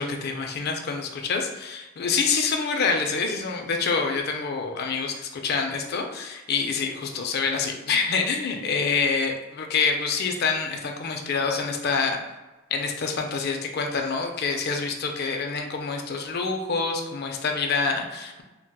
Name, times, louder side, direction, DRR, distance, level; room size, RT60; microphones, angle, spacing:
voice 1, 0.0-12.2 12.7-18.4, left 4 dB, 55° left, 3 dB, 0.4 m, -26 dB
3.9 x 2.2 x 2.2 m, 1.1 s
head